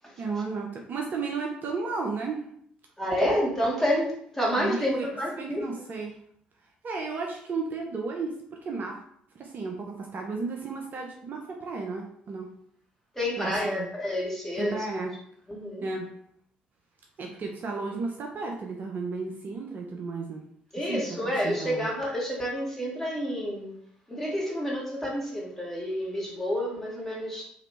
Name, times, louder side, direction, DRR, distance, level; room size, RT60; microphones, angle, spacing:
voice 1, 0.2-2.4 4.5-5.1 5.3-6.1 6.8-8.3 8.6-9.0 9.4-12.5 13.4-13.9 14.6-15.1 15.8-16.1 17.2-20.4 20.8-21.9, right 4 dB, 40° right, 1 dB, 0.5 m, -33 dB
voice 2, 3.0-5.6 13.1-15.1 15.5-15.8 20.7-23.7 24.1-27.4, equal, 5° left, -4 dB, 1.5 m, -29 dB
2.9 x 2.9 x 3.2 m, 0.67 s
figure-of-eight pair, 45°, 5 cm